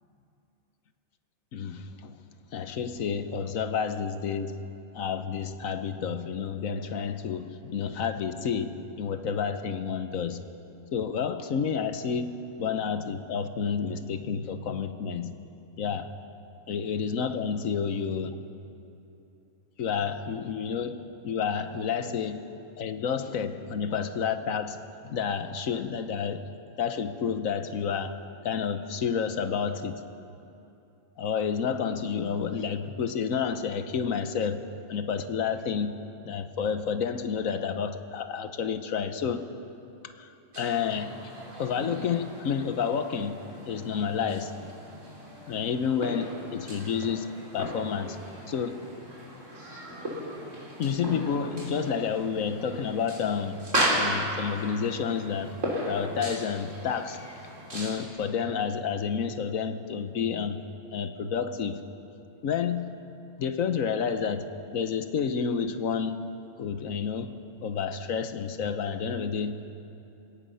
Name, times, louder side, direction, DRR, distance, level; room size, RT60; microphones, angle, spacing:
voice 1, 1.5-2.2 2.5-4.7 4.9-10.4 10.9-12.3 12.6-15.3 15.8-16.1 16.7-18.4 19.8-26.5 26.8-28.2 28.4-30.0 31.2-34.6 34.9-39.5 40.0-40.3 40.6-41.2 41.6-44.5 45.5-48.2 48.5-48.9 50.8-55.5 55.9-57.2 57.7-60.6 60.9-61.8 62.4-63.0 63.4-66.3 66.6-69.8, left 6 dB, 85° left, 10 dB, 1.4 m, -30 dB
sound 1, 40.5-58.0, right 1 dB, 65° right, 4.2 m, -35 dB
27.5 x 17.5 x 5.6 m, 2.8 s
omnidirectional pair, 1.4 m